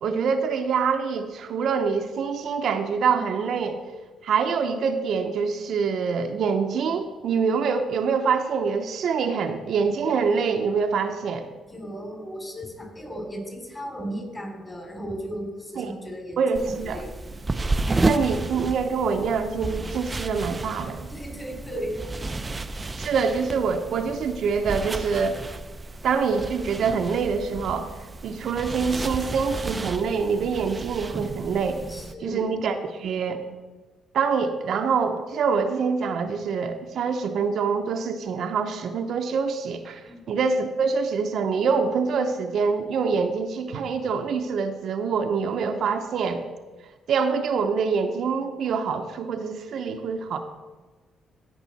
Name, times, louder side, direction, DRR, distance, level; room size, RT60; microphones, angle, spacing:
voice 1, 0.0-3.8 4.2-11.5 15.8-15.9 16.4-17.0 18.0-21.0 23.0-25.4 26.0-28.0 28.2-31.8 32.2-33.4 34.1-40.0 40.3-46.4 47.1-50.4, right 5 dB, 70° right, 5 dB, 0.7 m, -25 dB
voice 2, 11.7-17.1 21.1-22.0 22.2-22.5 31.9-32.5 40.1-40.2, equal, 20° left, 2 dB, 2.9 m, -35 dB
sound 1, 16.5-32.1, right 2 dB, 25° right, 0.5 m, -32 dB
15.5 x 5.4 x 4.1 m, 1.3 s
cardioid pair, 90°, 0 cm